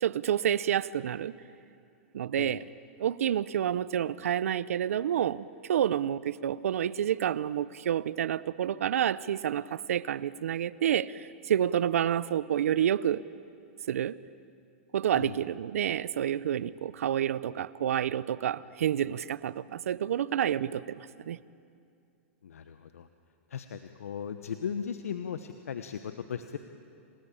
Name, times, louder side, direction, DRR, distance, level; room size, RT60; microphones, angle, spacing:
voice 1, 0.0-1.3 2.1-2.6 3.0-5.4 5.7-13.2 13.9-14.1 14.9-21.4, right 10 dB, 80° right, 18 dB, 0.7 m, -29 dB
voice 2, 22.4-23.1 23.5-26.6, left 7 dB, 90° left, 8 dB, 1.1 m, -37 dB
28.5 x 19.5 x 8.8 m, 2.5 s
hypercardioid pair, 130°, 8 cm